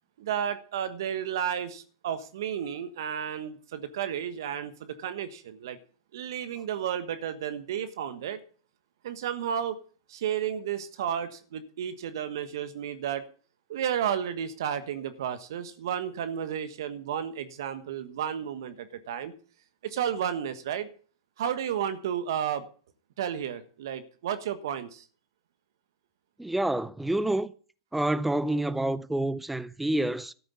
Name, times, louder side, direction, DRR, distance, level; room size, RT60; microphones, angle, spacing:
voice 1, 0.2-5.8 6.1-8.4 9.0-9.8 10.1-13.2 13.7-19.3 19.8-20.9 21.4-22.7 23.2-25.0, right 9 dB, 65° right, 1.3 m, -32 dB
voice 2, 26.4-27.5 27.9-30.3, right 1 dB, 5° right, 0.6 m, -28 dB
13.5 x 7.8 x 6.9 m
hypercardioid pair, 100°, 2 cm